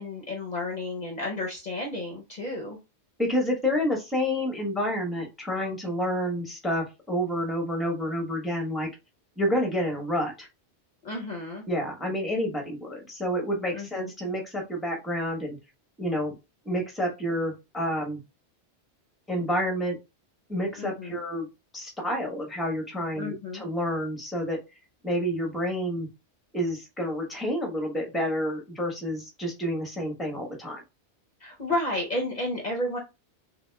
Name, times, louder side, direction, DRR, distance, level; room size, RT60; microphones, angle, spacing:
voice 1, 0.0-2.8 11.0-11.6 13.7-14.1 20.8-21.2 23.2-23.6 31.4-33.0, left 1 dB, 45° left, -1 dB, 0.8 m, -32 dB
voice 2, 3.2-8.9 9.4-10.5 11.7-15.6 16.0-16.3 16.6-18.2 19.3-20.0 20.5-21.5 21.7-24.6 25.0-26.1 26.5-30.8, equal, ahead, 1 dB, 0.9 m, -29 dB
5.8 x 2.2 x 2.2 m, 0.25 s
omnidirectional pair, 1.2 m